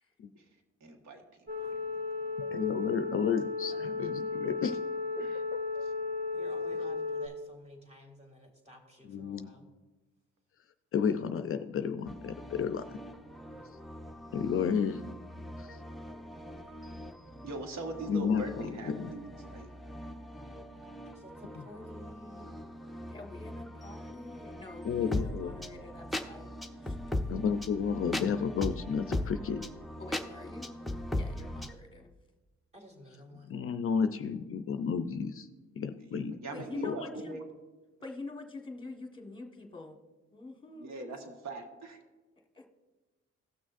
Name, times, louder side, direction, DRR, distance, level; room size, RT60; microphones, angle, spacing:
voice 1, 0.8-2.3 3.7-3.9 5.2-5.4 5.8-5.9 17.4-19.7 33.3-33.4 36.1-37.5 40.7-42.0, right 2 dB, 65° right, 4 dB, 1.4 m, -42 dB
sound 1, 1.5-7.3, left 4 dB, 45° right, 2.1 m, -35 dB
voice 2, 2.4-4.8 5.5-5.8 9.0-9.6 10.9-12.8 14.3-15.0 15.6-15.8 18.1-19.1 21.6-21.7 24.8-25.5 27.3-29.6 33.5-35.5 35.8-36.3 36.8-37.0, left 6 dB, 45° left, 9 dB, 0.5 m, -32 dB
voice 3, 6.3-9.6 21.0-22.4 32.7-33.6, left 1 dB, 20° right, 2 dB, 2.3 m, -52 dB
sound 2, 12.1-31.7, left 1 dB, ahead, 0.6 m, -40 dB
voice 4, 23.1-26.5 26.8-26.9 30.0-30.8 31.1-32.1 36.5-37.4 38.0-40.0 40.3-40.9 42.5-42.6, left 2 dB, 15° left, 3 dB, 1.4 m, -45 dB
17.5 x 6.2 x 2.5 m, 1.2 s
cardioid pair, 90°, 30 cm